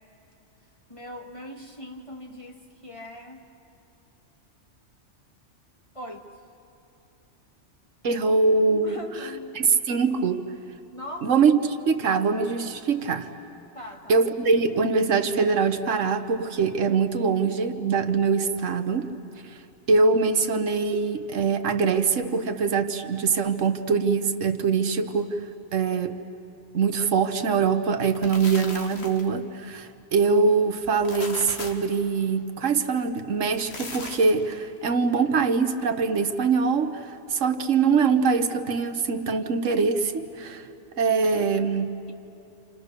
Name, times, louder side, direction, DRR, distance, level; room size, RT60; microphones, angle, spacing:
voice 1, 0.9-3.4 5.9-6.3 8.8-9.6 10.9-11.3 13.7-14.2, equal, 25° left, 2 dB, 1.8 m, -40 dB
voice 2, 8.0-9.0 9.5-10.5 11.2-13.3 14.1-19.1 19.9-25.4 25.7-26.2 26.7-40.6 41.0-41.9, right 5 dB, 85° right, 9 dB, 1.4 m, -23 dB
sound 1, 27.9-29.4 30.8-31.9 33.4-34.5, left 3 dB, 60° left, 1.8 m, -38 dB
28.5 x 28.5 x 6.7 m, 2.8 s
omnidirectional pair, 1.3 m